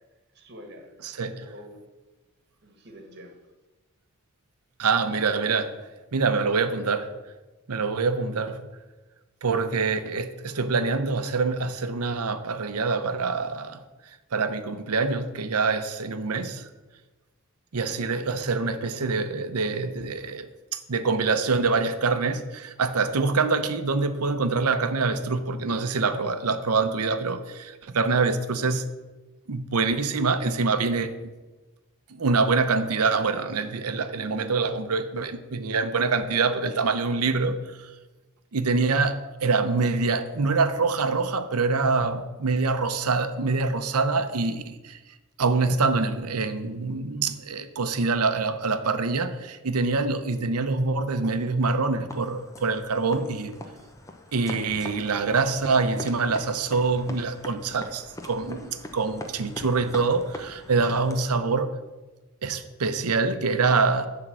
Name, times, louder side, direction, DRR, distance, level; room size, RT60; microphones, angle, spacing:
voice 1, 0.3-1.8 2.6-3.4, equal, 50° right, 4 dB, 1.5 m, -46 dB
voice 2, 1.0-1.4 4.8-5.7 6.1-7.1 7.7-8.6 9.4-13.8 14.3-16.7 17.7-28.9 29.5-31.1 32.1-37.9 38.5-45.0 45.4-53.6 54.3-61.7 62.4-64.1, right 4 dB, 90° right, 10 dB, 0.7 m, -25 dB
sound 1, 52.1-61.4, left 2 dB, 15° left, 0.7 m, -42 dB
11.0 x 3.7 x 7.4 m, 1.2 s
head